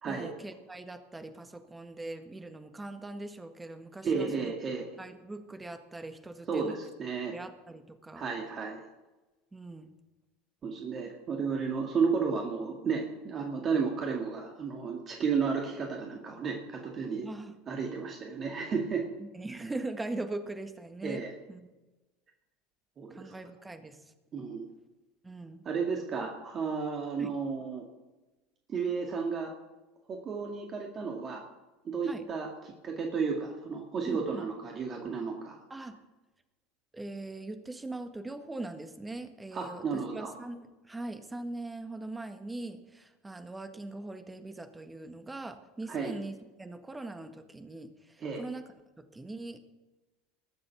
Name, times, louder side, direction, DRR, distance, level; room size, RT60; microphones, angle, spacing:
voice 1, 0.1-4.5 5.0-6.8 7.3-8.2 9.5-9.9 17.2-17.5 19.2-21.2 21.5-21.7 23.1-24.0 25.2-25.7 27.2-27.3 32.0-32.2 34.0-34.5 35.7-36.0 36.9-48.7 49.0-49.6, right 2 dB, 10° right, 8 dB, 1.6 m, -41 dB
voice 2, 4.0-4.9 6.5-7.3 8.1-8.8 10.6-17.3 17.7-19.0 21.0-21.3 23.0-23.3 24.3-24.7 25.7-27.8 28.7-29.5 30.1-31.4 31.9-35.6 39.5-40.3 45.9-46.1 48.2-48.4, right 5 dB, 35° right, 1 dB, 2.2 m, -33 dB
20.5 x 7.6 x 5.9 m, 1.1 s
figure-of-eight pair, 75°, 0 cm